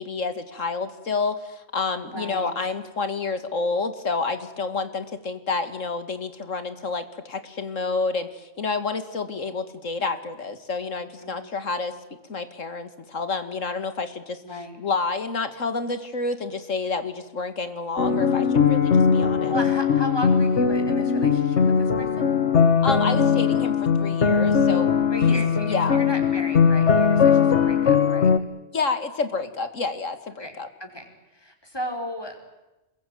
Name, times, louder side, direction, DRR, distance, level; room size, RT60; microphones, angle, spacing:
voice 1, 0.0-11.9 12.3-14.4 14.8-19.6 22.8-25.0 25.3-26.0 28.7-30.7, left 4 dB, 85° left, 10 dB, 2.5 m, -29 dB
voice 2, 2.0-2.5 11.2-11.5 14.4-14.8 19.5-22.3 25.1-28.3 30.4-30.5 30.8-32.4, equal, 20° left, 3 dB, 5.2 m, -35 dB
sound 1, 18.0-28.4, left 6 dB, 65° left, 1.7 m, -20 dB
27.5 x 22.0 x 9.3 m, 1.0 s
omnidirectional pair, 1.3 m